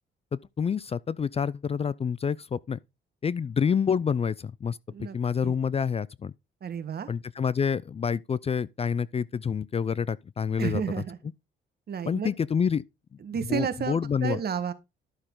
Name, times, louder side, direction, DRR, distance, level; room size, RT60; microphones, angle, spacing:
voice 1, 0.3-2.8 3.2-6.3 7.1-10.8 12.0-12.8 13.5-14.4, left 6 dB, 30° left, 0.4 m, -28 dB
voice 2, 6.6-7.1 10.6-11.2 11.9-12.3 13.2-14.7, right 7 dB, 50° right, 1.5 m, -31 dB
12.0 x 6.6 x 3.8 m
cardioid pair, 90°, 20 cm